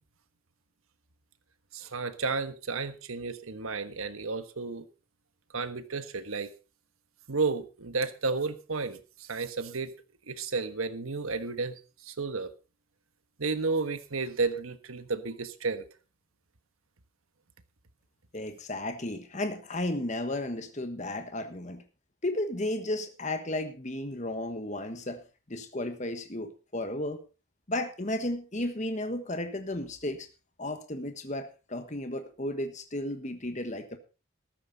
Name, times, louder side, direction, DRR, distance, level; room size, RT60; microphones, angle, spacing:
voice 1, 1.7-4.8 5.5-6.5 7.3-9.9 10.3-12.5 13.4-15.8, right 4 dB, 85° right, 1.3 m, -32 dB
voice 2, 18.3-21.8 22.2-25.2 25.5-27.2 27.7-30.3 30.6-34.0, left 1 dB, 35° left, 1.3 m, -34 dB
13.5 x 13.5 x 4.0 m
head